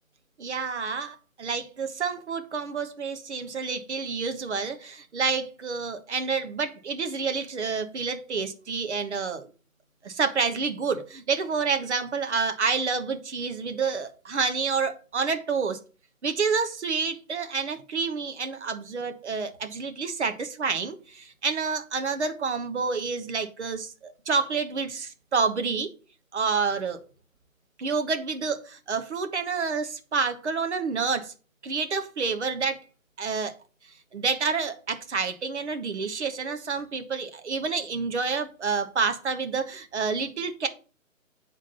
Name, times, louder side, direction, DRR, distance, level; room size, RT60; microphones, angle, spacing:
voice 1, 0.4-9.5 10.0-15.8 16.2-25.9 26.3-27.0 27.8-31.3 31.6-32.8 33.2-33.5 34.1-40.7, right 5 dB, 55° right, 1.3 m, -28 dB
9.3 x 3.7 x 5.6 m
figure-of-eight pair, 135°, 42 cm